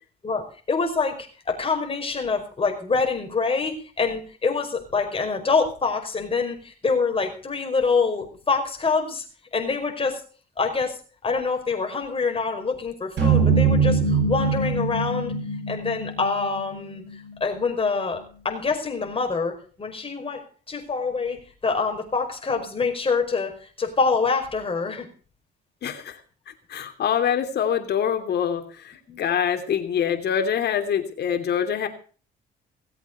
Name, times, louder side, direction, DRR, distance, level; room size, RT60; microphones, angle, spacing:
voice 1, 0.2-9.2 9.5-10.2 10.6-11.0 11.2-15.3 15.7-17.0 17.4-18.2 18.4-19.5 19.8-20.4 20.7-25.1 29.1-29.2, left 4 dB, 30° left, 3 dB, 5.0 m, -25 dB
sound 1, 13.2-17.5, right 5 dB, 65° right, 7.5 m, -23 dB
voice 2, 25.8-26.2 26.7-31.9, left 8 dB, 60° left, 7 dB, 2.9 m, -25 dB
18.5 x 8.1 x 6.8 m, 0.41 s
cardioid pair, 95°, 19 cm